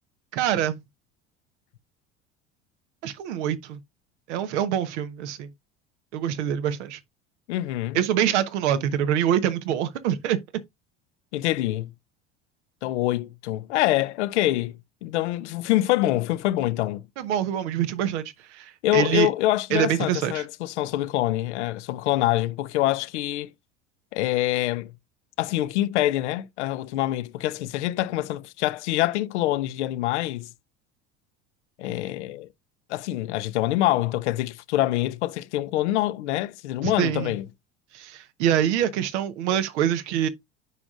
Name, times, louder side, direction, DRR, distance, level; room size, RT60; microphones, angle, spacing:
voice 1, 0.3-0.8 3.0-3.8 4.3-5.5 6.1-7.0 7.9-10.6 17.2-19.3 19.7-20.4 36.8-37.3 37.9-40.3, right 10 dB, 75° right, 1.1 m, -25 dB
voice 2, 7.5-8.0 11.3-11.9 12.8-17.0 18.8-23.5 24.1-24.9 25.4-30.5 31.8-32.5 32.9-37.4, left 15 dB, 80° left, 0.6 m, -25 dB
9.4 x 5.1 x 2.5 m
hypercardioid pair, 75°, 35 cm